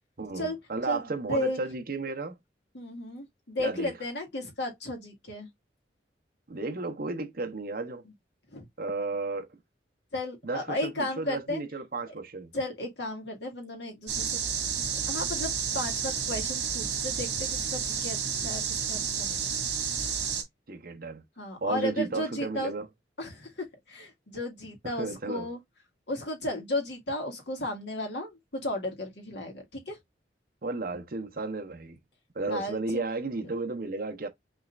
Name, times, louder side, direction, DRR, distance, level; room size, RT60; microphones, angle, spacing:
voice 1, 0.2-2.4 3.6-3.9 6.5-8.0 8.8-9.5 10.4-12.5 20.7-21.2 21.6-22.9 24.8-25.5 30.6-32.0 32.3-34.3, right 3 dB, 55° right, 0.9 m, -33 dB
voice 2, 2.7-5.5 8.5-8.6 10.1-11.6 12.5-14.4 15.1-19.5 21.4-22.7 23.2-25.6 26.1-30.0 32.5-33.0, left 1 dB, 75° left, 2.0 m, -34 dB
sound 1, 14.1-20.4, right 7 dB, 70° right, 1.9 m, -31 dB
5.6 x 3.2 x 2.4 m
head